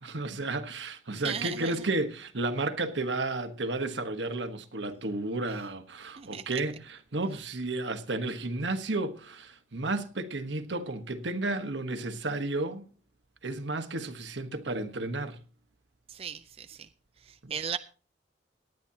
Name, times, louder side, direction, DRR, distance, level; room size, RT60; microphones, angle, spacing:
voice 1, 0.0-12.9 13.4-15.4 17.4-17.5, right 2 dB, 85° right, 1.3 m, -32 dB
voice 2, 1.1-1.7 6.2-6.4 16.1-16.9 17.2-17.8, right 7 dB, 35° right, 0.5 m, -37 dB
18.5 x 11.0 x 2.9 m
head